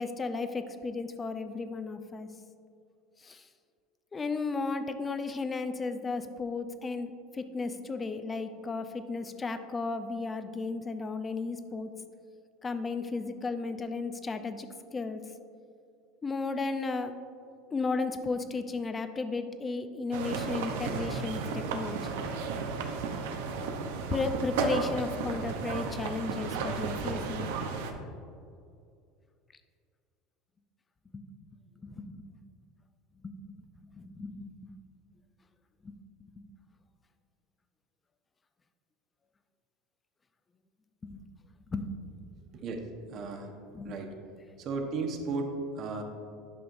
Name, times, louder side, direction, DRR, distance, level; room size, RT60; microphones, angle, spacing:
voice 1, 0.0-2.3 3.2-3.5 4.1-11.9 12.6-15.2 16.2-17.1 17.7-22.2 24.1-27.5 31.1-31.2 31.8-32.4 33.1-33.3 33.9-34.7 35.8-35.9 41.0-41.2 41.7-41.9 43.7-44.0, left 3 dB, 20° left, 9 dB, 0.5 m, -34 dB
sound 1, 20.1-27.9, right 4 dB, 85° right, 0.7 m, -33 dB
voice 2, 43.1-43.5 43.8-44.1 44.6-46.0, right 3 dB, 45° right, 3 dB, 1.0 m, -34 dB
11.0 x 5.6 x 2.6 m, 2.4 s
supercardioid pair, 120°, 0 cm